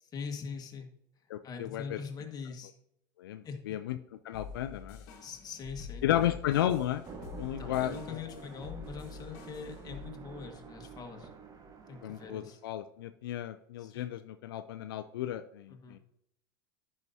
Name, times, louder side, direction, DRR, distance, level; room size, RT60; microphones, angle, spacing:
voice 1, 0.0-0.9 1.4-2.7 3.4-3.8 5.2-6.3 7.6-11.3 11.9-12.6 13.8-14.1 15.7-16.0, left 5 dB, 35° left, 3 dB, 1.6 m, -43 dB
voice 2, 1.3-2.0 3.2-4.0 4.2-5.0 6.0-7.0 7.4-8.2 12.0-16.0, left 12 dB, 85° left, 10 dB, 0.4 m, -33 dB
sound 1, 4.3-10.1, left 6 dB, 65° left, 1.3 m, -47 dB
sound 2, 7.0-12.6, right 4 dB, 30° right, 1.2 m, -48 dB
10.5 x 5.6 x 2.8 m, 0.75 s
hypercardioid pair, 90°, 12 cm